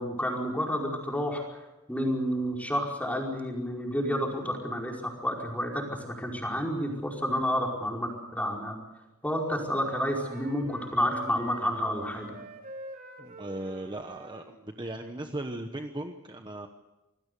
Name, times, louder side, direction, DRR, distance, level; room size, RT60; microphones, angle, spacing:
voice 1, 0.0-1.6 1.9-8.8 9.2-12.4, equal, 5° left, 0 dB, 5.0 m, -30 dB
Wind instrument woodwind instrument, 9.3-14.6, right 2 dB, 40° right, 4.0 m, -47 dB
voice 2, 13.2-16.7, right 1 dB, 20° right, 5 dB, 1.1 m, -37 dB
27.0 x 19.0 x 6.9 m, 1.0 s
head